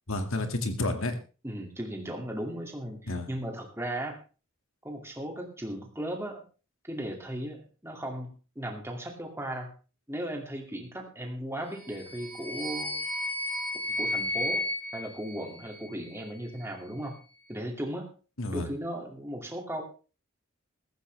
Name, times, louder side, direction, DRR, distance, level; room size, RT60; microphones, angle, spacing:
voice 1, 0.1-1.1 3.1-3.3 18.4-18.7, left 2 dB, 65° left, 7 dB, 2.2 m, -30 dB
voice 2, 1.4-4.2 4.8-6.4 6.8-9.7 10.1-13.0 14.0-14.6 14.9-17.2 17.5-18.1 18.5-19.8, right 1 dB, 10° right, 2 dB, 2.4 m, -36 dB
sound 1, 11.7-16.1, left 1 dB, 5° left, 6.7 m, -33 dB
15.0 x 14.5 x 3.4 m, 0.35 s
head